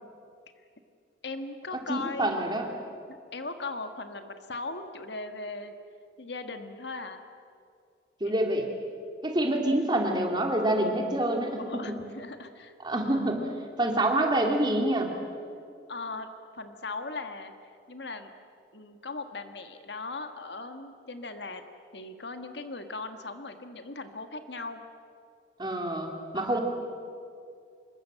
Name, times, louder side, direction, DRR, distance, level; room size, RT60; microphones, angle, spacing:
voice 1, 1.2-2.4 3.1-5.7 6.2-7.2 8.2-8.5 11.6-12.7 15.9-16.3 16.5-18.3 18.7-21.6 21.9-24.8 26.3-26.6, left 3 dB, 70° left, 7 dB, 1.7 m, -38 dB
voice 2, 1.9-2.7 8.2-8.6 9.2-12.0 12.8-13.4 13.8-15.1 25.6-26.6, right 1 dB, 25° right, 2 dB, 2.8 m, -27 dB
25.5 x 22.0 x 7.7 m, 2.4 s
head